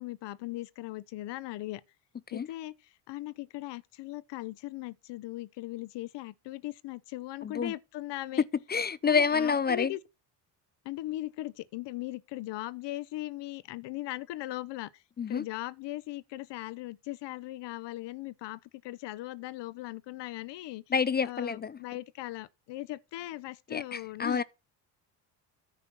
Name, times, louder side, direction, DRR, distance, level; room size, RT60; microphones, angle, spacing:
voice 1, 0.0-1.8 2.3-8.4 9.1-10.0 10.8-15.0 15.3-20.8 21.2-24.4, left 16 dB, 65° left, 0.8 m, -39 dB
voice 2, 7.4-7.7 8.7-9.9 15.2-15.4 20.9-21.8 23.7-24.4, left 6 dB, 25° left, 0.4 m, -28 dB
9.9 x 4.4 x 7.2 m
supercardioid pair, 70°, 46 cm